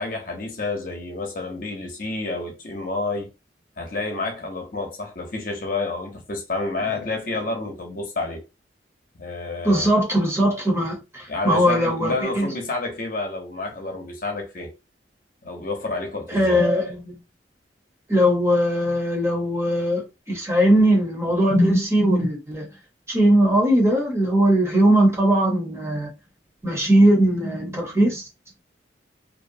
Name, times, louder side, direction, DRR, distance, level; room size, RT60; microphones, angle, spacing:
voice 1, 0.0-3.3 3.8-8.4 9.2-9.9 11.3-14.7 15.4-16.6, left 3 dB, 50° left, 0.7 m, -29 dB
voice 2, 9.6-12.5 16.3-17.1 18.1-22.7 23.1-26.1 26.6-28.2, equal, 15° right, 0.8 m, -19 dB
2.6 x 2.1 x 2.6 m
head